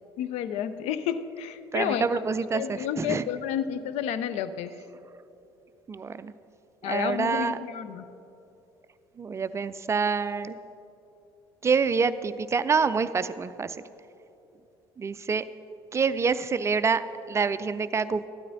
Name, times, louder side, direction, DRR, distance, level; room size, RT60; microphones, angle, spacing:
voice 1, 0.2-2.0 2.5-4.7 6.8-8.0, left 9 dB, 55° left, 13 dB, 0.5 m, -30 dB
voice 2, 1.7-3.2 5.9-6.3 6.8-7.6 9.2-10.5 11.6-13.8 15.0-15.5 15.9-18.3, right 5 dB, 20° right, 14 dB, 0.4 m, -27 dB
14.0 x 12.0 x 2.7 m, 2.8 s
figure-of-eight pair, 60°, 13 cm